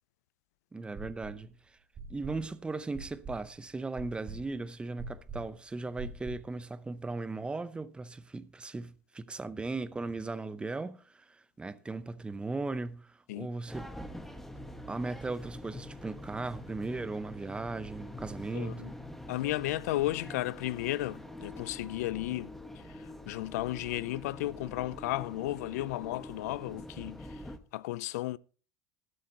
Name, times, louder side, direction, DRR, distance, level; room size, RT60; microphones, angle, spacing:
voice 1, 0.7-1.6 2.1-14.0 14.9-18.9, right 3 dB, 10° right, 0.7 m, -37 dB
sound 1, 0.9-1.5 1.9-6.6, right 3 dB, 35° right, 2.6 m, -44 dB
sound 2, 13.7-27.6, left 1 dB, 5° left, 1.0 m, -45 dB
voice 2, 18.5-18.9 19.3-27.4 27.7-28.4, left 16 dB, 85° left, 0.4 m, -34 dB
20.5 x 7.9 x 2.8 m
supercardioid pair, 120°, 8 cm